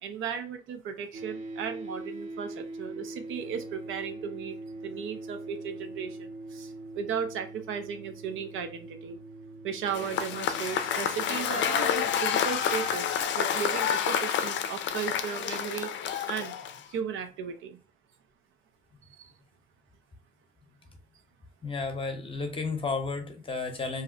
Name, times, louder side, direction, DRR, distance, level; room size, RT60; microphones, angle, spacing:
voice 1, 0.0-4.6 4.8-9.2 9.6-15.9 16.3-17.8 19.1-19.3, right 7 dB, 85° right, 0.5 m, -36 dB
sound 1, 1.1-13.2, right 2 dB, 40° right, 0.8 m, -43 dB
Cheering / Applause / Crowd, 9.9-17.0, left 8 dB, 65° left, 0.4 m, -29 dB
voice 2, 21.6-24.0, left 4 dB, 25° left, 0.7 m, -32 dB
2.6 x 2.1 x 3.8 m
cardioid pair, 90°, 20 cm